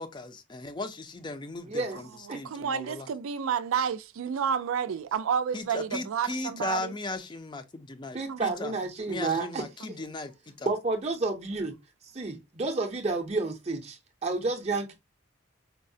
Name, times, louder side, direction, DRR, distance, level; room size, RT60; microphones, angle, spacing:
voice 1, 0.0-3.1 5.5-8.7 9.1-10.7, left 2 dB, 20° left, 0.4 m, -37 dB
voice 2, 1.7-2.0 2.3-2.4 8.1-9.6 10.7-11.7 12.1-14.9, right 3 dB, 30° right, 0.5 m, -30 dB
voice 3, 2.3-6.9 8.3-8.4, right 7 dB, 85° right, 0.4 m, -30 dB
4.5 x 2.0 x 2.6 m
head